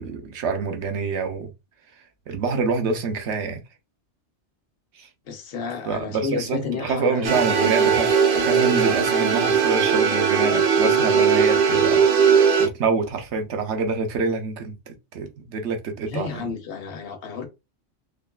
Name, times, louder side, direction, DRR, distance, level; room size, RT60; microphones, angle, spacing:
voice 1, 0.0-1.5 2.3-3.6 5.0-5.1 5.8-12.0 12.3-16.5, right 4 dB, 75° right, 1.1 m, -26 dB
voice 2, 5.3-7.4 16.1-17.5, left 5 dB, 60° left, 1.0 m, -31 dB
sound 1, 7.2-12.7, right 6 dB, 55° right, 0.8 m, -19 dB
3.8 x 3.2 x 2.3 m
omnidirectional pair, 1.2 m